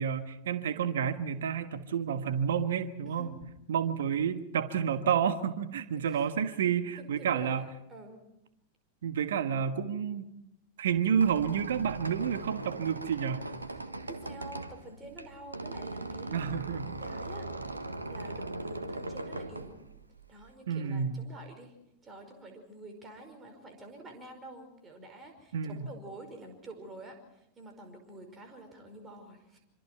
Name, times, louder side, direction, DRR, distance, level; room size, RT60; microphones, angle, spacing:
voice 1, 0.0-3.3 3.7-7.7 9.0-10.3 10.8-13.5 16.3-16.9 20.7-21.3 25.5-25.9, right 7 dB, 60° right, 11 dB, 1.4 m, -30 dB
voice 2, 7.0-8.2 14.1-17.5 18.1-19.7 20.3-21.7 22.0-29.6, right 2 dB, 20° right, 4 dB, 5.2 m, -48 dB
Squeak, 10.9-20.5, right 2 dB, 80° right, 1.4 m, -40 dB
26.0 x 25.5 x 4.6 m, 0.84 s
figure-of-eight pair, 90°, 0 cm